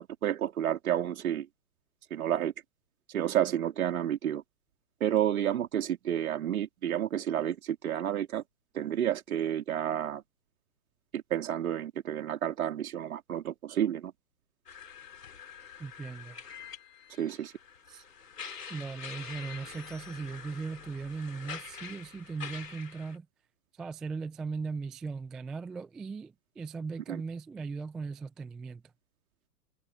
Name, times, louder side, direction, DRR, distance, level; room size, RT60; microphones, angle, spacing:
voice 1, 0.0-1.5 2.1-2.5 3.1-4.4 5.0-8.4 8.7-10.2 11.1-14.1 17.2-17.5 27.1-27.2, right 10 dB, 55° right, 3.8 m, -30 dB
sound 1, 14.7-23.2, left 6 dB, 70° left, 5.3 m, -45 dB
voice 2, 15.8-16.4 17.9-18.0 18.7-23.3 23.7-28.9, right 4 dB, ahead, 0.4 m, -38 dB
figure-of-eight pair, 115°, 49 cm